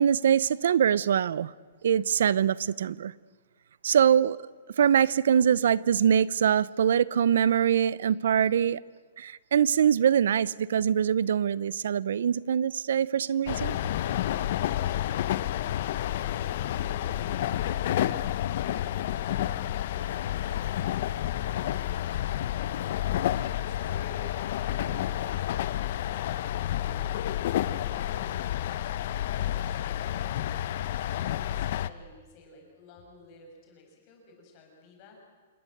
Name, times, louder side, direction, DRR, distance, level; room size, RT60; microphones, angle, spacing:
voice 1, 0.0-1.5 1.8-3.1 3.8-4.4 4.8-8.8 9.2-13.8, right 8 dB, 75° right, 0.7 m, -23 dB
sound 1, 13.5-31.9, left 12 dB, 50° left, 0.8 m, -30 dB
voice 2, 16.6-17.8 22.3-23.3 23.7-26.3 26.7-28.8 29.1-30.8 31.1-35.2, left 3 dB, 30° left, 7.1 m, -52 dB
27.5 x 21.0 x 8.0 m
hypercardioid pair, 165°, 0 cm